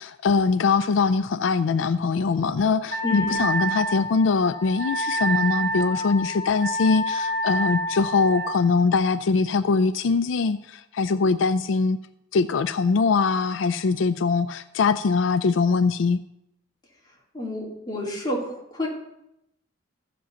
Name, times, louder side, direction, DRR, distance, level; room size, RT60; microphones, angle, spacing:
voice 1, 0.0-12.0 12.3-16.2, left 4 dB, 80° left, 12 dB, 0.4 m, -22 dB
Wind instrument woodwind instrument, 2.9-8.5, right 1 dB, 60° right, 1.2 m, -28 dB
voice 2, 3.0-3.5 17.3-18.9, left 1 dB, 20° left, -5 dB, 3.5 m, -30 dB
14.5 x 5.2 x 6.9 m, 0.82 s
head